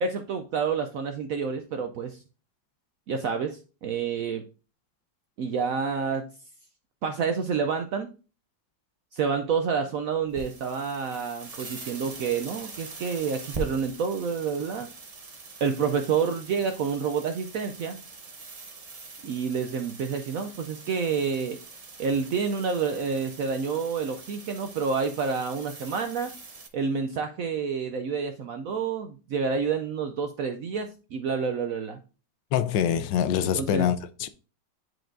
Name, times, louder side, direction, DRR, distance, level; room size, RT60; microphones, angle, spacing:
voice 1, 0.0-2.2 3.1-4.4 5.4-6.3 7.0-8.1 9.1-14.9 15.6-18.0 19.2-21.6 22.0-26.3 26.7-32.0 33.5-33.9, right 5 dB, 75° right, 0.8 m, -28 dB
sound 1, 10.3-26.7, right 3 dB, 45° right, 0.4 m, -43 dB
voice 2, 32.5-34.3, left 9 dB, 80° left, 1.3 m, -25 dB
9.7 x 4.6 x 2.6 m
omnidirectional pair, 2.0 m